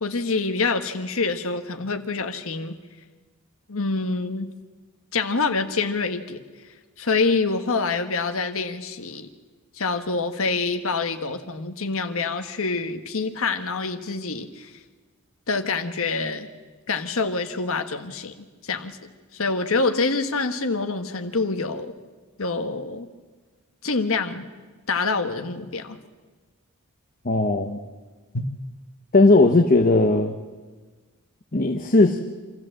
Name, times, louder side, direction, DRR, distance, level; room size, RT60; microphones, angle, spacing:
voice 1, 0.0-2.8 3.7-4.5 5.1-6.4 7.0-9.3 9.8-14.7 15.5-16.5 16.9-18.3 18.6-19.0 19.3-21.9 22.4-23.1 23.8-24.5 24.9-26.0 28.3-28.5, left 4 dB, 65° left, 7 dB, 1.4 m, -26 dB
voice 2, 27.2-27.8 29.1-30.4 31.5-32.2, left 2 dB, 40° left, 5 dB, 1.0 m, -17 dB
26.0 x 14.0 x 7.7 m, 1.4 s
head